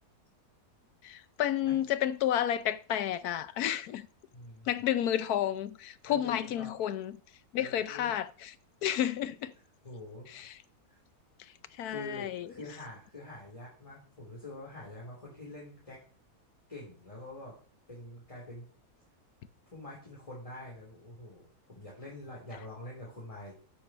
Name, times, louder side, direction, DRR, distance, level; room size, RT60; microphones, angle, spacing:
voice 1, 1.0-4.1 4.7-7.1 7.5-8.5 8.8-9.5 10.3-10.5 11.8-12.5, left 11 dB, 75° left, 1.2 m, -31 dB
voice 2, 4.3-4.7 5.1-5.3 6.1-6.7 7.6-8.1 9.8-10.3 10.9-11.0 11.8-16.0 16.7-17.5 17.9-18.7 19.7-23.5, left 2 dB, 20° left, 3.1 m, -45 dB
7.5 x 7.2 x 6.0 m
omnidirectional pair, 1.7 m